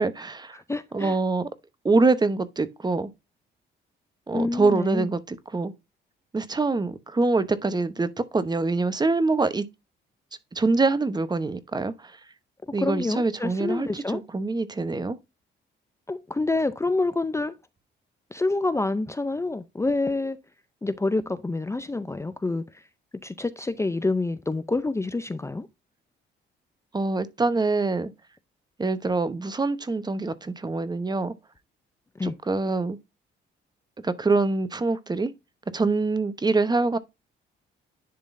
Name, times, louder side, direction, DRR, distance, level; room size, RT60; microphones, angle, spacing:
voice 1, 0.0-0.6 0.9-1.5 1.8-3.1 4.3-5.7 6.3-9.7 10.5-12.2 12.7-15.2 26.9-28.1 28.8-31.3 32.2-33.0 34.0-35.3 35.7-37.0, right 3 dB, 20° right, 0.9 m, -25 dB
voice 2, 0.5-1.2 4.3-5.1 12.8-14.2 16.1-17.6 18.3-20.4 20.8-22.6 23.2-25.7 32.2-32.3, left 2 dB, 15° left, 0.5 m, -27 dB
10.5 x 3.7 x 2.6 m
cardioid pair, 90°, 20 cm